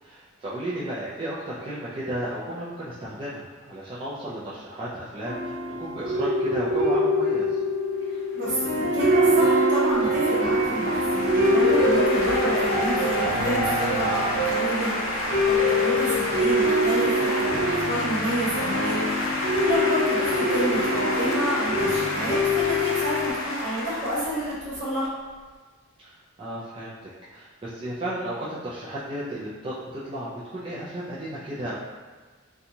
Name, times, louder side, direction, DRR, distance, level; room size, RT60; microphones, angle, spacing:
voice 1, 0.0-7.6 26.0-26.9 27.3-31.7, right 1 dB, 25° right, -10 dB, 0.3 m, -34 dB
sound 1, 5.2-23.3, equal, 75° right, 0.7 m, -24 dB
voice 2, 8.3-25.1, right 1 dB, 60° right, -8 dB, 1.1 m, -29 dB
sound 2, 8.4-25.1, left 1 dB, 70° left, 0.5 m, -31 dB
2.9 x 2.2 x 2.6 m, 1.4 s
head